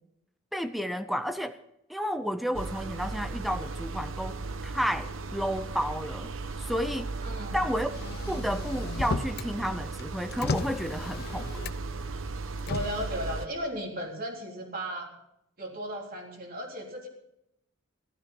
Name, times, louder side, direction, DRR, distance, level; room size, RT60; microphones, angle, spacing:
voice 1, 0.5-1.6 1.9-4.4 4.6-6.3 6.6-7.1 7.5-7.9 8.3-11.5, equal, ahead, 10 dB, 0.7 m, -31 dB
sound 1, 2.5-13.5, right 3 dB, 85° right, 0.9 m, -36 dB
voice 2, 7.2-7.6 12.7-15.1 15.6-17.1, equal, 45° right, 0 dB, 3.6 m, -35 dB
Motor vehicle (road), 7.9-9.5 9.9-12.0 12.6-13.1, left 3 dB, 50° left, 0.6 m, -35 dB
15.0 x 13.0 x 5.4 m, 0.80 s
head